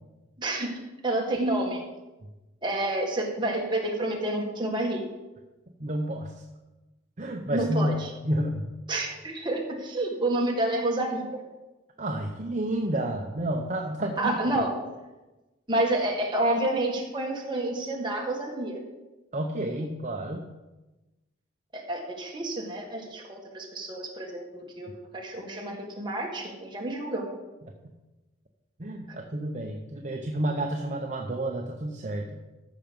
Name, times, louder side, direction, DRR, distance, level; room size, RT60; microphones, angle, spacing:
voice 1, 0.4-1.8 2.6-5.0 7.5-8.1 8.9-11.4 14.2-14.7 15.7-18.8 21.7-27.2, right 1 dB, 25° right, -1 dB, 1.8 m, -29 dB
voice 2, 5.8-6.3 7.2-8.0 8.2-8.6 12.0-14.4 19.3-20.5 28.8-32.4, right 1 dB, 40° right, 3 dB, 0.8 m, -30 dB
14.0 x 6.0 x 5.3 m, 1.1 s
head